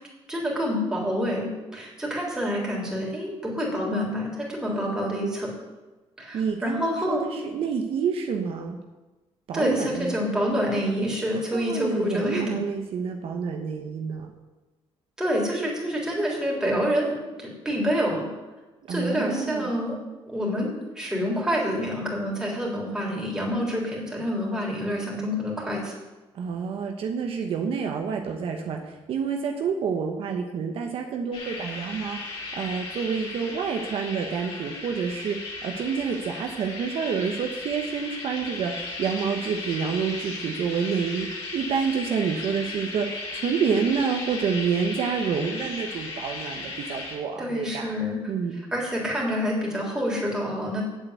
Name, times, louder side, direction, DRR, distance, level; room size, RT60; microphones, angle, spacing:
voice 1, 0.3-5.5 6.2-7.2 9.5-12.6 15.2-18.3 18.9-20.0 20.3-25.9 47.4-48.2 48.7-50.8, equal, 5° right, -4 dB, 3.5 m, -27 dB
voice 2, 4.7-5.2 6.3-8.8 9.5-10.1 11.3-14.3 18.9-19.7 26.3-41.3 41.5-47.9 48.3-48.6, right 6 dB, 60° right, 3 dB, 1.0 m, -28 dB
sound 1, 31.3-47.2, left 3 dB, 65° left, 3.6 m, -36 dB
8.9 x 7.7 x 8.0 m, 1.2 s
cardioid pair, 140°, 11 cm